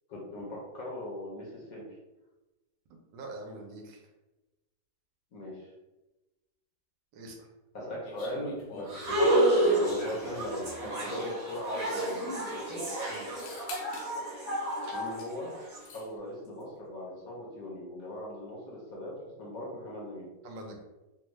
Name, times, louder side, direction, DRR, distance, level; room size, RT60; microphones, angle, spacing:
voice 1, 0.1-1.8 5.3-5.7 7.7-9.2 9.6-12.8 14.9-15.5 15.9-19.1 19.4-20.3, left 1 dB, 60° left, -4 dB, 1.0 m, -39 dB
voice 2, 3.1-4.0 7.1-7.4 13.1-13.5 20.4-20.8, right 2 dB, 80° right, 2 dB, 1.3 m, -44 dB
sound 1, 8.0-10.8 11.9-12.0 12.2-12.6 13.1-14.1 14.8-15.3 15.6-16.1, left 2 dB, 75° left, 1.3 m, -47 dB
sound 2, 8.9-15.8, right 1 dB, 40° right, 0.8 m, -30 dB
3.4 x 2.1 x 3.1 m, 1.1 s
omnidirectional pair, 2.0 m